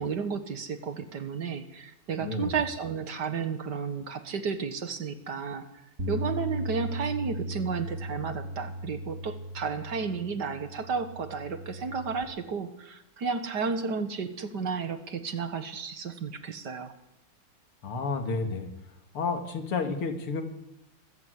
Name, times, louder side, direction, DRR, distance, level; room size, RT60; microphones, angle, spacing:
voice 1, 0.0-5.6 6.1-16.9, right 5 dB, 55° right, 10 dB, 1.9 m, -32 dB
voice 2, 2.2-2.6 17.8-18.7 19.1-20.4, left 4 dB, 85° left, 6 dB, 3.1 m, -30 dB
Bass guitar, 6.0-12.2, equal, 35° right, 2.3 m, -37 dB
24.5 x 14.5 x 8.2 m, 0.90 s
omnidirectional pair, 2.3 m